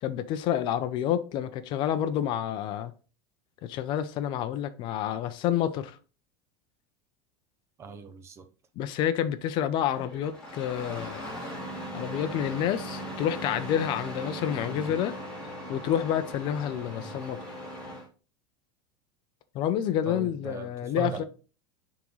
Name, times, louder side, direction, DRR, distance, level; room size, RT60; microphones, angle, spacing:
voice 1, 0.0-2.9 3.6-6.0 8.8-11.4 11.9-15.2 15.7-17.4 19.5-21.2, left 10 dB, 35° left, 0.5 m, -29 dB
voice 2, 7.8-8.5 14.7-14.9 17.0-17.2 20.1-21.2, right 6 dB, 20° right, 0.5 m, -39 dB
Engine starting, 9.9-18.1, equal, 5° left, 2.2 m, -39 dB
11.0 x 3.6 x 3.1 m
supercardioid pair, 165°, 13 cm